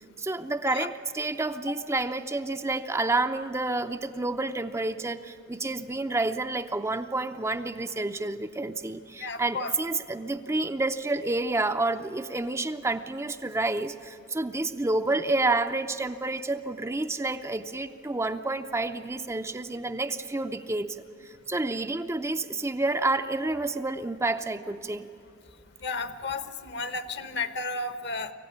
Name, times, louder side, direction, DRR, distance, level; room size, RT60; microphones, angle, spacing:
voice 1, 0.2-25.1, right 2 dB, 15° right, 8 dB, 0.6 m, -29 dB
voice 2, 9.2-9.7 25.8-28.3, left 3 dB, 55° left, 11 dB, 1.2 m, -33 dB
25.0 x 15.5 x 9.9 m, 2.5 s
head